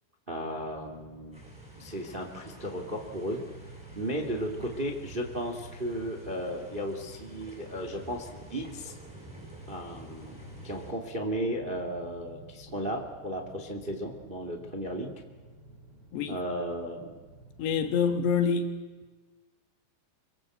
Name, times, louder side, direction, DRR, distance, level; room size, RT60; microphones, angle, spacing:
voice 1, 0.3-1.4 1.8-3.4 3.9-8.9 9.7-10.4 10.6-15.1 16.3-17.1, equal, 60° right, 0.5 m, -35 dB
sound 1, 0.5-18.5, right 2 dB, 25° right, 5.8 m, -51 dB
sound 2, 1.3-10.9, equal, ahead, 7.3 m, -50 dB
voice 2, 17.6-18.7, left 6 dB, 65° left, 3.2 m, -26 dB
26.0 x 25.5 x 8.0 m
omnidirectional pair, 5.9 m